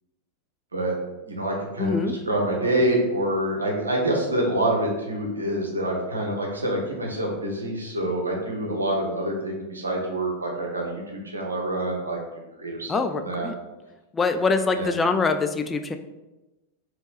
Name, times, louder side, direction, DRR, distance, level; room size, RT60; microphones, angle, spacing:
voice 1, 1.2-12.2 12.6-13.5 14.8-14.9, right 1 dB, 75° right, 0 dB, 0.9 m, -26 dB
voice 2, 1.8-2.1 12.9-13.5 14.1-15.9, left 4 dB, 15° left, 8 dB, 0.3 m, -24 dB
4.0 x 3.1 x 3.4 m, 1.1 s
figure-of-eight pair, 90°, 0 cm